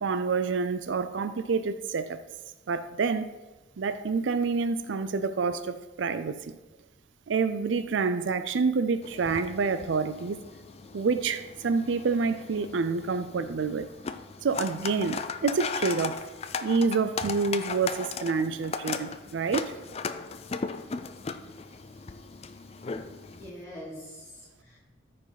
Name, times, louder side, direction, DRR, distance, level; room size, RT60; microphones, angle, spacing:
voice 1, 0.0-2.2 2.7-3.4 3.8-6.6 7.3-10.4 10.9-13.9 14.4-16.3 16.6-19.7, right 4 dB, 75° right, 11 dB, 0.4 m, -28 dB
sound 1, 9.0-23.5, left 5 dB, 30° left, 0.4 m, -37 dB
voice 2, 23.3-24.8, equal, 15° left, -7 dB, 2.9 m, -44 dB
13.5 x 5.1 x 4.0 m, 1.1 s
head